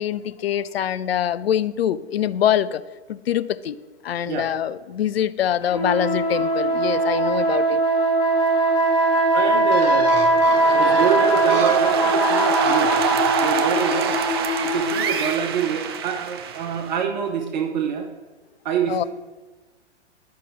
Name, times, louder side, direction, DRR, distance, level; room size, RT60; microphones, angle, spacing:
voice 1, 0.0-2.8 3.1-3.8 4.0-7.8 18.9-19.0, left 10 dB, 65° left, 0.5 m, -24 dB
Bird, 5.6-14.8, right 3 dB, 60° right, 1.3 m, -35 dB
sound 1, 5.7-15.4, right 1 dB, 15° left, 0.9 m, -21 dB
voice 2, 9.3-10.4 10.7-14.2 14.6-18.1 18.6-19.1, right 7 dB, 40° right, 0.8 m, -26 dB
sound 2, 10.1-17.0, right 8 dB, 25° right, 0.4 m, -25 dB
10.5 x 5.6 x 4.9 m
figure-of-eight pair, 115°, 34 cm